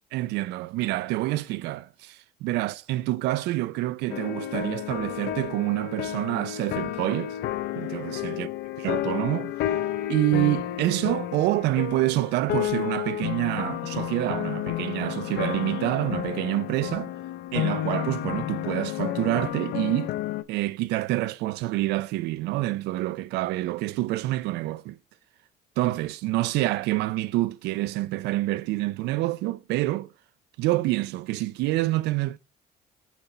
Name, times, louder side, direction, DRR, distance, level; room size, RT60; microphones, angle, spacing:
voice 1, 0.1-7.4 7.8-8.5 8.8-9.8 10.1-17.1 17.5-20.1 20.5-25.0 25.8-30.1 30.6-32.4, right 17 dB, 85° right, 0.5 m, -27 dB
sound 1, 4.1-20.4, left 13 dB, 70° left, 0.5 m, -31 dB
7.3 x 4.2 x 3.3 m
cardioid pair, 110°, 17 cm